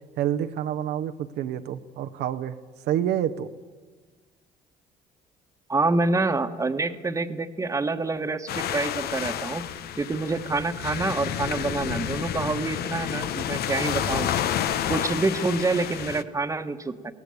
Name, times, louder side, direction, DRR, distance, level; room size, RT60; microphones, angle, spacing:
voice 1, 0.2-2.6 2.9-3.5, right 10 dB, 80° right, 7 dB, 0.9 m, -28 dB
voice 2, 5.7-9.7 10.0-14.3 14.9-17.1, right 3 dB, 20° right, 9 dB, 1.3 m, -27 dB
sound 1, 8.5-16.2, left 10 dB, 65° left, 1.0 m, -30 dB
22.0 x 17.5 x 8.6 m, 1.4 s
cardioid pair, 110°, 17 cm